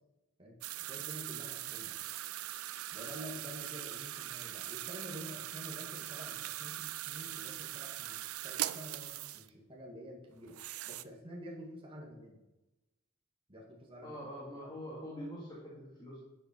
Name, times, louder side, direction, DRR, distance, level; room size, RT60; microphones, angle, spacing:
sound 1, 0.6-9.5 10.4-11.0, right 14 dB, 80° right, 0.5 m, -41 dB
voice 1, 0.9-1.9 2.9-8.2 8.4-10.5 10.9-12.4 13.5-14.2 14.5-14.7, equal, 25° right, -2 dB, 2.3 m, -48 dB
voice 2, 14.0-16.2, equal, 20° left, -6 dB, 2.7 m, -44 dB
12.0 x 7.7 x 4.8 m, 0.96 s
head